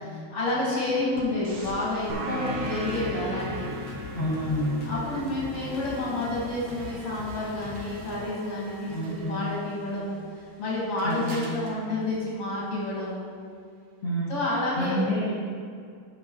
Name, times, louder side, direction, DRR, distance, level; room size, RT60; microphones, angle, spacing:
voice 1, 0.1-3.8 4.8-10.2 10.6-13.3 14.3-15.1, left 2 dB, 60° left, -6 dB, 1.5 m, -29 dB
sound 1, 1.1-13.1, equal, 60° right, 2.4 m, -43 dB
sound 2, 2.1-7.3, right 1 dB, 80° right, 2.8 m, -37 dB
sound 3, 2.3-8.2, left 4 dB, 80° left, 2.4 m, -43 dB
voice 2, 4.1-4.9 8.9-9.4 11.0-11.5 14.0-14.4 14.7-15.3, equal, 40° left, -10 dB, 1.1 m, -29 dB
11.5 x 6.1 x 2.9 m, 2.2 s
omnidirectional pair, 4.5 m